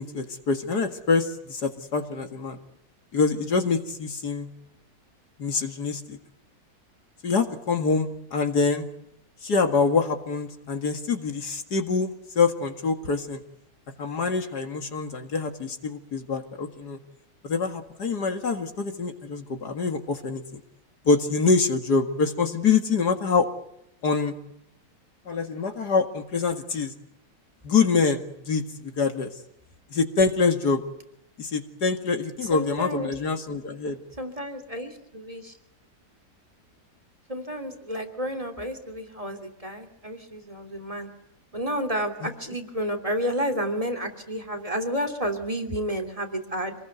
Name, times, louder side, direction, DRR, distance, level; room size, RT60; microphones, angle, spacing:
voice 1, 0.0-2.6 3.1-4.5 5.4-6.2 7.2-8.9 9.4-13.4 14.0-17.0 17.4-20.6 21.1-23.5 24.0-24.3 25.3-26.9 27.6-29.3 29.9-30.8 31.4-34.0, left 4 dB, 65° left, 7 dB, 2.5 m, -25 dB
voice 2, 32.5-33.1 34.2-35.5 37.3-41.1 41.5-46.7, equal, 20° right, 7 dB, 3.1 m, -31 dB
27.0 x 20.0 x 8.1 m, 0.78 s
omnidirectional pair, 1.9 m